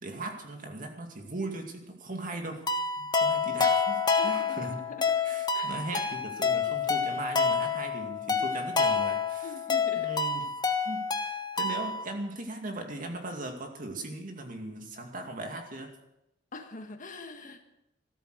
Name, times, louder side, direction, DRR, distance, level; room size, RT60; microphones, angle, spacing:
voice 1, 0.0-2.6 3.0-4.8 5.2-9.5 10.0-10.5 10.8-15.9, right 2 dB, 45° right, 4 dB, 2.4 m, -38 dB
sound 1, 2.7-12.1, left 5 dB, 25° left, 1.2 m, -28 dB
voice 2, 4.2-5.3 5.5-6.0 9.4-10.1 16.5-17.6, left 2 dB, 45° left, 6 dB, 1.6 m, -44 dB
14.0 x 13.0 x 6.5 m, 0.86 s
head